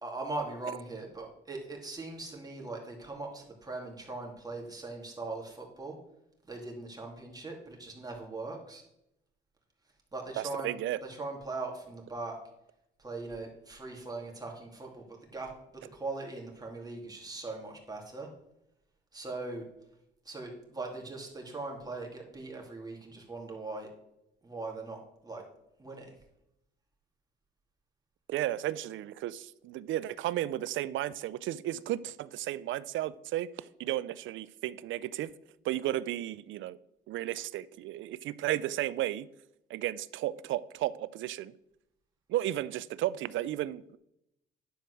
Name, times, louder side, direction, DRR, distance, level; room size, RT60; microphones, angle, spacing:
voice 1, 0.0-6.0 6.5-8.8 10.1-12.3 13.0-15.0 15.3-18.3 19.1-19.6 20.2-23.9 24.4-25.4 25.8-26.2, right 3 dB, 20° right, 2.7 m, -40 dB
voice 2, 10.4-11.0 28.3-33.5 33.8-35.3 35.6-36.8 37.1-39.3 39.7-41.5 42.3-44.0, right 13 dB, 75° right, 0.4 m, -33 dB
10.5 x 4.6 x 6.3 m
cardioid pair, 90°, 20 cm